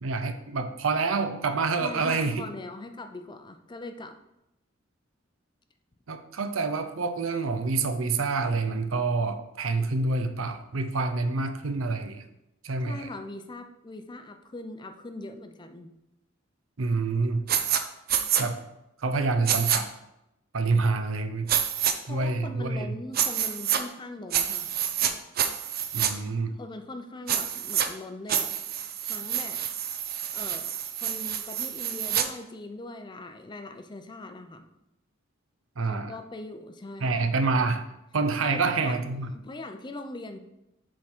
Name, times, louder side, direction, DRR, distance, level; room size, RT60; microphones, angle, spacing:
voice 1, 0.0-2.4 6.1-12.2 12.6-13.1 16.8-17.4 18.4-18.6 19.0-19.9 20.5-21.5 22.1-23.0 25.9-26.5 35.8-36.1 37.0-37.8 38.1-39.3, right 3 dB, 90° right, 8 dB, 0.7 m, -27 dB
voice 2, 1.8-4.2 12.8-15.9 22.1-24.7 26.5-28.5 29.0-29.6 30.3-34.7 35.8-37.2 38.4-40.4, left 2 dB, 25° left, 8 dB, 0.5 m, -41 dB
sound 1, 17.5-17.8 18.1-18.4 19.5-19.8 21.5-21.9 23.1-23.8 24.3-25.1 25.4-26.1 27.3-27.9 28.3-32.3, right 9 dB, 50° right, 0.5 m, -27 dB
7.4 x 3.8 x 4.4 m, 0.88 s
head